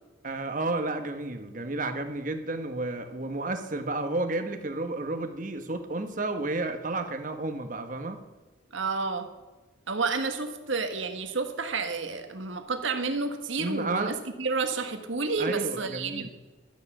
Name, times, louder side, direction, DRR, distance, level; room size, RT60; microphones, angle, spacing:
voice 1, 0.2-8.2 13.6-14.1 15.4-16.3, right 2 dB, 40° right, 7 dB, 1.1 m, -31 dB
voice 2, 8.7-9.3 9.9-16.3, right 4 dB, 75° right, 6 dB, 1.5 m, -30 dB
13.0 x 9.3 x 6.0 m, 1.2 s
head